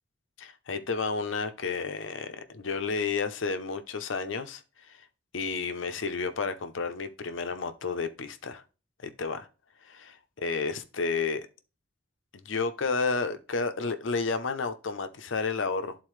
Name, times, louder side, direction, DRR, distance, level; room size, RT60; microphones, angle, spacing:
voice 1, 0.4-5.1 5.3-8.6 9.0-9.5 9.8-10.1 10.4-11.5 12.3-16.0, left 4 dB, 90° left, 0.7 m, -31 dB
11.5 x 4.1 x 3.2 m
head